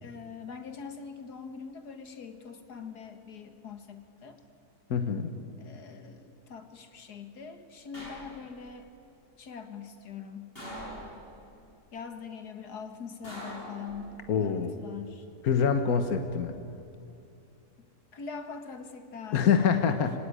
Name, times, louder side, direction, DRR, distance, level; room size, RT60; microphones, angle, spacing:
voice 1, 0.0-4.4 5.6-8.9 9.4-10.6 11.9-15.3 18.1-20.1, left 6 dB, 85° left, 8 dB, 2.3 m, -43 dB
voice 2, 4.9-5.3 14.3-14.7 15.4-16.5 19.3-20.1, left 7 dB, 70° left, 7 dB, 1.7 m, -25 dB
sound 1, 7.9-8.7 10.6-11.5 13.2-14.4 15.8-16.3, equal, 35° left, 8.3 m, -43 dB
25.5 x 17.5 x 9.9 m, 2.6 s
omnidirectional pair, 1.7 m